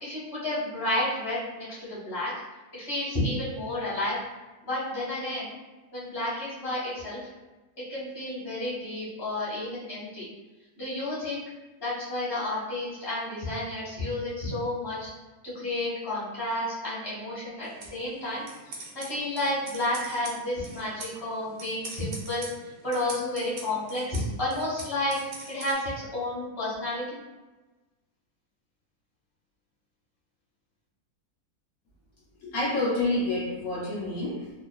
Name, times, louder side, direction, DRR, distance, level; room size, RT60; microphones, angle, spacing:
voice 1, 0.0-2.3 2.7-4.2 4.6-5.5 5.9-7.2 7.9-10.2 10.8-11.4 11.8-15.1 15.5-18.4 18.9-22.5 22.8-25.2 25.5-27.2, left 1 dB, 20° left, -9 dB, 0.9 m, -31 dB
sound 1, 17.6-25.7, right 2 dB, 70° right, 1.0 m, -44 dB
voice 2, 32.4-34.5, left 2 dB, 70° left, -5 dB, 0.9 m, -28 dB
2.4 x 2.4 x 2.2 m, 1.1 s
omnidirectional pair, 1.7 m